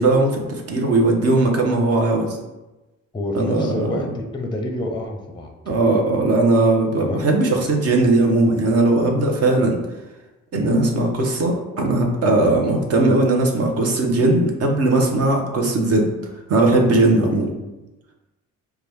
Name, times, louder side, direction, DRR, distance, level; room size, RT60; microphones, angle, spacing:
voice 1, 0.0-2.4 3.3-4.0 5.7-9.8 10.5-16.1 16.5-17.5, right 2 dB, 55° right, 1 dB, 0.9 m, -18 dB
voice 2, 3.1-5.7 7.0-7.3 17.2-17.6, left 1 dB, 15° left, 4 dB, 0.5 m, -28 dB
4.7 x 2.3 x 3.5 m, 1.0 s
cardioid pair, 90°, 30 cm